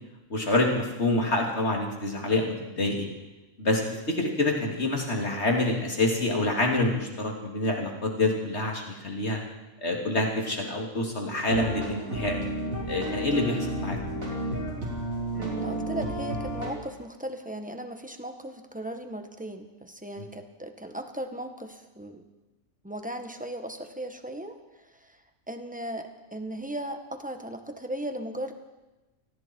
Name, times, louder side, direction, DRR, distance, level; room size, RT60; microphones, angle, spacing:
voice 1, 0.3-3.1 3.6-9.4 9.8-12.4 12.9-14.0 20.2-20.3, left 2 dB, 50° left, 1 dB, 3.4 m, -27 dB
sound 1, 11.5-16.7, right 1 dB, 80° right, 4.8 m, -32 dB
voice 2, 15.6-22.2 22.8-25.2 25.5-28.5, right 1 dB, 5° right, 6 dB, 1.6 m, -37 dB
28.5 x 20.0 x 4.7 m, 1.1 s
omnidirectional pair, 1.4 m